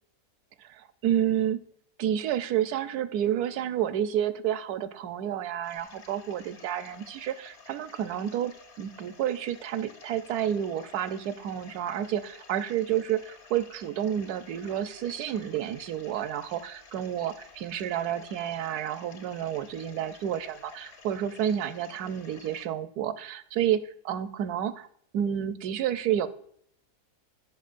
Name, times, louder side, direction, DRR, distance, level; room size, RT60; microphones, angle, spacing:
voice 1, 0.6-1.6 2.0-24.9 25.1-26.3, right 10 dB, 75° right, 12 dB, 1.1 m, -30 dB
sound 1, 5.6-22.7, left 4 dB, 65° left, 1.7 m, -52 dB
15.0 x 5.8 x 2.5 m, 0.65 s
omnidirectional pair, 1.7 m